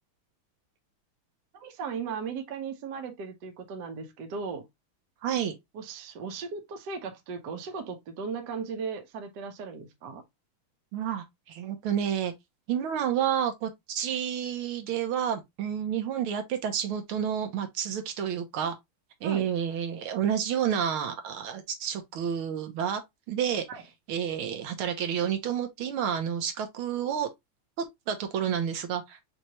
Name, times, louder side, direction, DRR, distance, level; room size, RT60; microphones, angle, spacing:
voice 1, 1.5-4.7 5.7-10.2 19.2-19.5 23.7-23.8, right 5 dB, 60° right, 1.3 m, -37 dB
voice 2, 5.2-5.6 10.9-12.3 12.7-18.8 19.2-23.0 23.3-23.7 24.1-27.3 27.8-29.2, right 8 dB, 80° right, 1.6 m, -30 dB
5.5 x 2.8 x 2.9 m
omnidirectional pair, 2.4 m